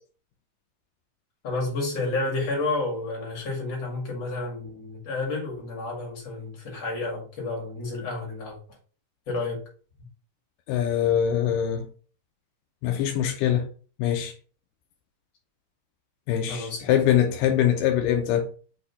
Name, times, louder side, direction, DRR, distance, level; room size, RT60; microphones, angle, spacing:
voice 1, 1.4-8.6 9.3-9.6 16.5-17.1, left 3 dB, 50° left, 3.2 m, -30 dB
voice 2, 10.7-11.9 12.8-13.7 14.0-14.3 16.3-18.5, left 10 dB, 85° left, 2.2 m, -23 dB
6.4 x 2.9 x 5.5 m
omnidirectional pair, 3.9 m